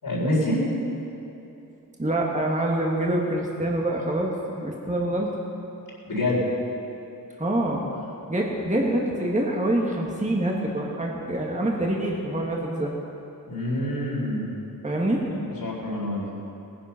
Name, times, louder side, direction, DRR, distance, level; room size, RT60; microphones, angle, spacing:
voice 1, 0.0-0.7 6.0-6.4 13.5-14.4 15.6-16.3, left 1 dB, 75° left, -5 dB, 4.4 m, -26 dB
voice 2, 2.0-4.3 4.6-5.3 7.4-7.8 8.3-12.9 14.8-15.2 15.8-16.0, right 1 dB, 20° right, -2 dB, 1.6 m, -25 dB
19.0 x 10.5 x 5.7 m, 2.9 s
wide cardioid pair, 100°, 36 cm